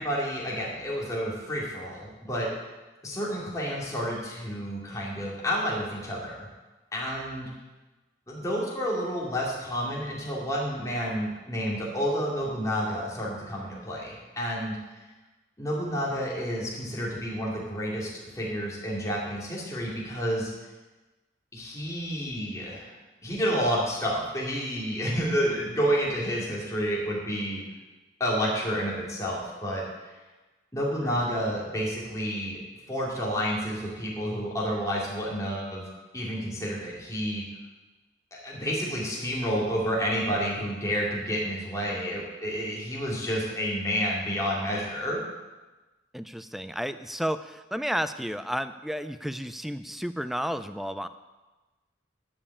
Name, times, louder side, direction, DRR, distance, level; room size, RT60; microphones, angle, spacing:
voice 1, 0.0-2.5 3.0-6.5 6.9-7.5 8.3-14.8 15.6-20.5 21.5-23.0 23.2-27.6 28.2-29.8 30.7-32.6 32.9-35.9 36.1-37.4 38.3-45.2, equal, 20° left, -5 dB, 2.7 m, -30 dB
voice 2, 46.1-51.1, equal, ahead, 11 dB, 0.4 m, -32 dB
12.0 x 5.5 x 8.5 m, 1.2 s
head